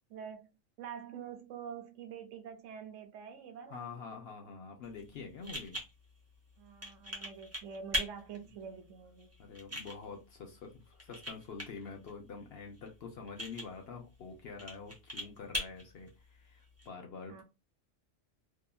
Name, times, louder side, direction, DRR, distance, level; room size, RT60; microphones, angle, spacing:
voice 1, 0.1-0.5 0.8-3.9 6.6-9.3 17.3-17.4, right 7 dB, 70° right, 0.9 m, -46 dB
voice 2, 3.7-5.8 9.4-17.4, left 5 dB, 60° left, 0.8 m, -46 dB
sound 1, 4.8-16.9, equal, 15° right, 0.7 m, -43 dB
2.8 x 2.4 x 2.3 m
omnidirectional pair, 1.4 m